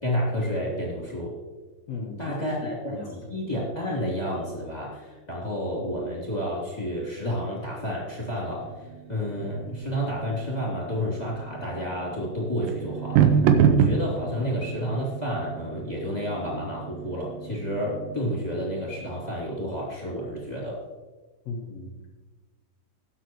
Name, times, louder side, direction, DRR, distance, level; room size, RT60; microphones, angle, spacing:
voice 1, 0.0-1.4 2.2-3.0 3.3-13.4 13.8-20.8, equal, 10° left, -5 dB, 2.3 m, -30 dB
voice 2, 1.9-3.3 21.4-22.1, left 3 dB, 70° left, -2 dB, 1.6 m, -37 dB
sound 1, 8.6-19.4, right 7 dB, 85° right, 3.1 m, -28 dB
19.0 x 7.9 x 3.1 m, 1.3 s
omnidirectional pair, 4.9 m